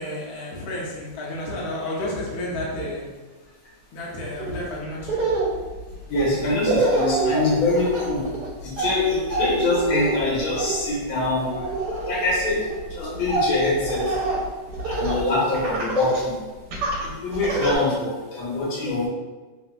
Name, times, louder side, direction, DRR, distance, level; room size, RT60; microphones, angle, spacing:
voice 1, 0.0-3.0 3.9-5.3, left 1 dB, 60° left, -5 dB, 1.1 m, -31 dB
Laughter, 4.4-4.6 5.0-15.2 15.5-16.3 16.7-17.8, right 2 dB, 70° right, 1.0 m, -27 dB
voice 2, 6.1-8.3 8.6-14.2 14.8-16.4 17.0-19.1, left 2 dB, 80° left, -5 dB, 1.7 m, -24 dB
3.3 x 2.9 x 2.3 m, 1.3 s
omnidirectional pair, 2.3 m